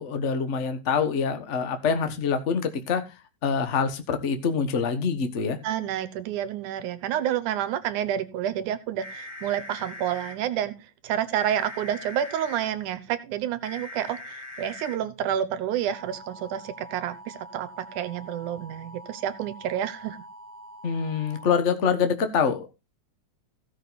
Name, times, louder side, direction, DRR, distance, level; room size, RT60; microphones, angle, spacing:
voice 1, 0.0-3.0 3.4-5.6 20.8-22.7, left 6 dB, 50° left, 0.8 m, -25 dB
voice 2, 5.6-10.8 11.0-20.2, right 10 dB, 80° right, 2.3 m, -29 dB
sound 1, 9.0-10.3 11.3-12.7 13.6-15.0 15.9-21.5, left 1 dB, 65° left, 6.7 m, -43 dB
16.0 x 6.4 x 4.1 m
omnidirectional pair, 3.6 m